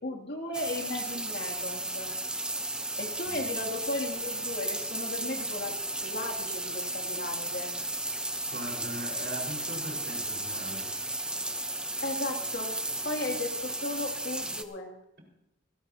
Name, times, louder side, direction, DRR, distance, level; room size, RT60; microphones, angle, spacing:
voice 1, 0.0-2.1 3.0-5.7 6.0-7.7 12.0-12.8 13.0-14.9, left 2 dB, 55° left, 1 dB, 2.6 m, -35 dB
sound 1, 0.5-14.6, right 1 dB, 5° right, 0.8 m, -34 dB
voice 2, 8.5-11.0, equal, 55° right, -1 dB, 4.8 m, -40 dB
26.5 x 12.0 x 2.8 m, 0.88 s
head